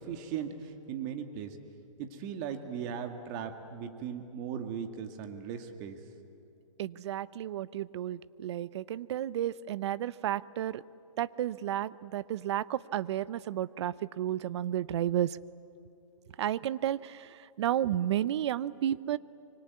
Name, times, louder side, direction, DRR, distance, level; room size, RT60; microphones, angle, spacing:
voice 1, 0.0-1.6 2.0-6.0, right 8 dB, 35° right, 6 dB, 2.1 m, -38 dB
voice 2, 6.8-10.8 11.2-15.4 16.4-17.2 17.6-19.2, right 11 dB, 55° right, 19 dB, 0.7 m, -32 dB
25.5 x 24.0 x 9.5 m, 2.8 s
hypercardioid pair, 150°, 17 cm